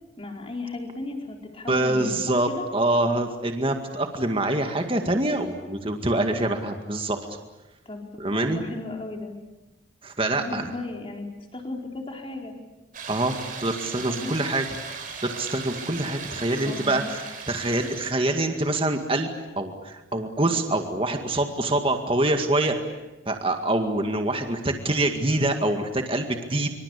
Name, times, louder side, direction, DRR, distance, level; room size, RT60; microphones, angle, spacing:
voice 1, 0.2-2.6 7.9-8.0 8.3-9.3 10.3-11.3 11.5-12.5 14.1-14.3 16.6-17.1, left 2 dB, 30° left, 2 dB, 4.4 m, -35 dB
voice 2, 1.7-7.2 8.2-8.6 10.0-10.7 13.1-14.9 15.2-17.2 17.5-22.8 23.3-26.7, right 2 dB, 25° right, 5 dB, 2.0 m, -25 dB
sound 1, 12.9-18.1, right 5 dB, 45° right, 5.2 m, -37 dB
26.5 x 25.0 x 8.6 m, 1.0 s
head